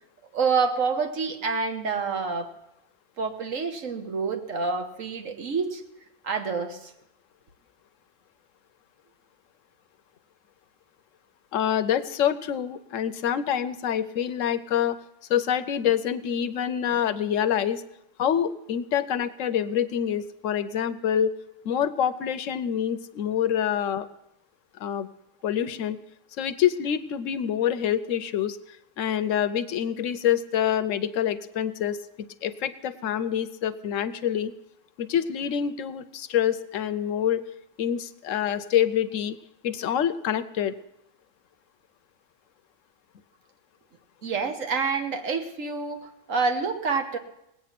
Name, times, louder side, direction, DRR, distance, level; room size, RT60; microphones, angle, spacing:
voice 1, 0.3-2.5 3.2-5.8 6.2-6.9 44.2-47.2, right 5 dB, 65° right, 6 dB, 1.6 m, -27 dB
voice 2, 11.5-15.0 15.3-17.8 18.2-21.3 21.6-24.1 24.8-25.1 25.4-26.0 26.4-28.6 29.0-34.5 35.0-37.4 37.8-39.4 39.6-40.7, left 9 dB, 70° left, 13 dB, 1.0 m, -26 dB
19.0 x 8.5 x 5.9 m, 0.83 s
omnidirectional pair, 1.5 m